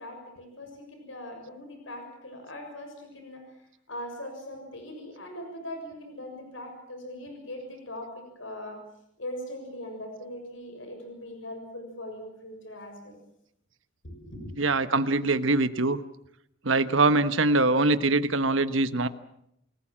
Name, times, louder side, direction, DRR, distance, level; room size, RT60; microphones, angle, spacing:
voice 1, 0.0-3.4 3.9-8.8 9.2-13.2 14.0-14.5, left 1 dB, 80° left, 4 dB, 6.8 m, -40 dB
voice 2, 14.6-16.0 16.6-19.1, right 2 dB, 90° right, 12 dB, 1.3 m, -23 dB
29.0 x 19.5 x 7.6 m, 0.77 s
head